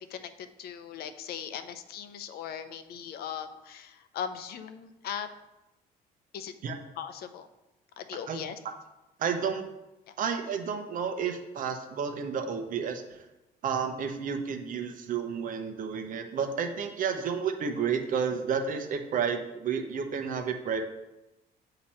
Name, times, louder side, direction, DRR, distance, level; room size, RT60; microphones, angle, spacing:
voice 1, 0.6-5.3 6.3-6.5 7.0-7.5 8.0-8.5, left 8 dB, 65° left, 10 dB, 0.5 m, -39 dB
voice 2, 9.2-9.7 10.2-13.2 13.6-20.9, right 6 dB, 55° right, 6 dB, 0.7 m, -31 dB
8.5 x 2.9 x 4.3 m, 0.97 s
cardioid pair, 110°, 17 cm